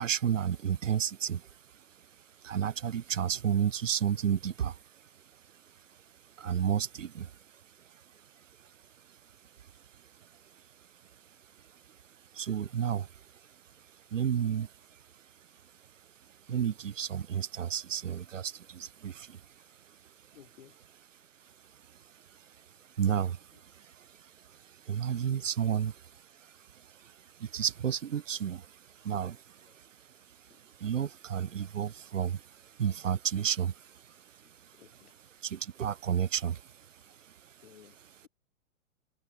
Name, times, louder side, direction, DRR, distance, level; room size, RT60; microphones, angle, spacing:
voice 1, 0.0-1.8 2.4-5.4 5.9-6.0 6.2-7.4 7.6-8.7 9.1-9.2 9.6-10.6 11.6-12.0 12.3-13.4 13.8-15.0 16.5-20.4 21.4-34.8 35.4-37.7, right 8 dB, 65° right, 4.9 m, -34 dB
voice 2, 20.3-20.8 25.6-25.7 29.7-29.8 30.5-30.6 34.8-35.1 37.6-38.0, left 10 dB, 50° left, 7.4 m, -56 dB
hypercardioid pair, 175°, 41 cm